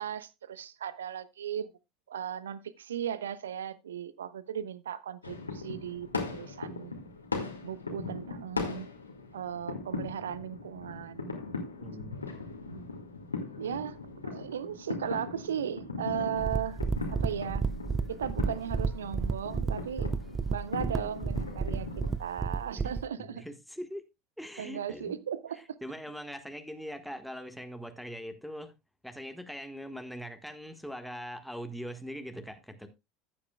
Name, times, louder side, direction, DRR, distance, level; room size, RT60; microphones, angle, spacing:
voice 1, 0.0-1.7 2.1-7.0 7.6-8.9 9.3-11.4 13.6-14.0 14.2-16.8 17.1-17.7 18.1-20.1 20.5-21.9 22.2-23.4 24.6-25.6, right 9 dB, 70° right, 0.6 m, -36 dB
sound 1, 5.2-22.1, left 3 dB, 85° left, 2.0 m, -39 dB
voice 2, 11.8-12.9 22.8-22.9 23.3-24.1 24.4-25.2 25.5-28.7 29.0-32.9, equal, ahead, 1.5 m, -42 dB
sound 2, 16.4-23.1, right 5 dB, 20° right, 0.4 m, -32 dB
14.5 x 8.6 x 2.3 m
figure-of-eight pair, 75°, 0 cm